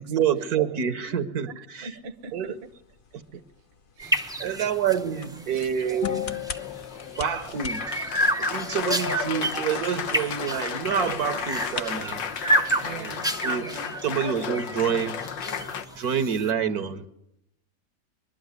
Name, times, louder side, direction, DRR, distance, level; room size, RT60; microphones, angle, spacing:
voice 1, 0.0-1.9 2.3-2.5 3.1-3.4 4.4-6.4 7.2-8.0 8.4-12.2 13.0-13.1 13.4-13.7 14.0-15.2 16.0-17.1, right 8 dB, 60° right, 11 dB, 1.4 m, -27 dB
voice 2, 1.5-2.5 3.3-3.4 3.9-4.5 5.2-5.5 12.8-14.0, right 5 dB, 45° right, 8 dB, 1.1 m, -42 dB
sound 1, 1.9-12.7, left 5 dB, 45° left, 0.7 m, -45 dB
sound 2, 4.0-16.5, right 1 dB, 5° right, 0.5 m, -30 dB
Applause, 6.0-15.8, left 7 dB, 90° left, 1.8 m, -33 dB
22.5 x 12.0 x 9.5 m, 0.84 s
omnidirectional pair, 1.9 m